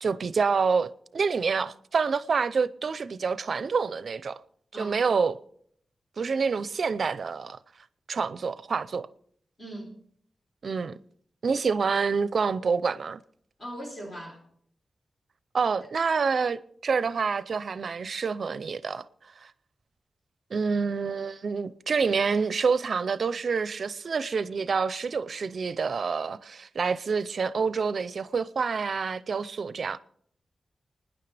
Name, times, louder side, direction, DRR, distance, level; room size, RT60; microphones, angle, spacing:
voice 1, 0.0-4.4 4.8-5.4 6.2-7.6 8.1-9.1 10.6-11.0 11.4-13.2 15.5-19.1 19.4-19.5 20.5-30.0, right 5 dB, 55° right, 0.6 m, -27 dB
voice 2, 4.7-5.0 9.6-10.0 13.6-14.4, equal, 30° left, 3.5 m, -39 dB
30.0 x 10.0 x 3.4 m
wide cardioid pair, 160°, 0 cm